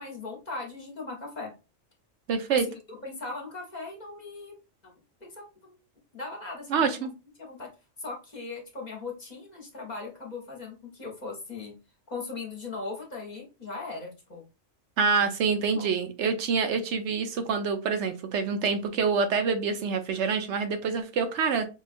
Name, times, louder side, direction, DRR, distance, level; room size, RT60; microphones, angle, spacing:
voice 1, 0.0-1.5 2.5-4.9 5.2-5.8 6.1-7.1 7.4-7.7 8.0-11.7 12.1-14.4 15.2-15.3 15.7-15.9, left 3 dB, 40° left, 0 dB, 1.0 m, -39 dB
voice 2, 2.3-2.6 6.7-7.1 15.0-21.7, right 5 dB, 75° right, 7 dB, 0.9 m, -26 dB
4.7 x 2.3 x 2.5 m, 0.30 s
omnidirectional pair, 1.2 m